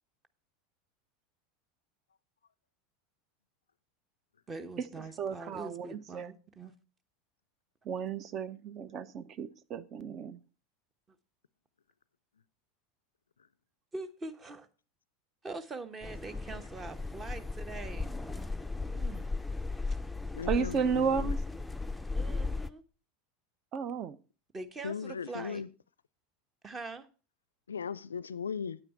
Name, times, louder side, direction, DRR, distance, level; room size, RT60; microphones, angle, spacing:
voice 1, 4.5-6.7 13.9-14.7 15.4-18.1 18.9-19.3 19.9-20.0 22.1-22.8 24.5-25.6 26.6-27.1, right 3 dB, 25° right, 1.1 m, -43 dB
voice 2, 5.2-6.3 7.9-10.4 20.5-21.4 23.7-24.2, right 6 dB, 40° right, 0.7 m, -33 dB
sound 1, 16.0-22.7, left 3 dB, 5° left, 0.5 m, -36 dB
voice 3, 20.3-21.3 24.8-25.7 27.7-28.8, left 6 dB, 80° left, 0.4 m, -37 dB
9.2 x 9.1 x 4.4 m
figure-of-eight pair, 80°, 0 cm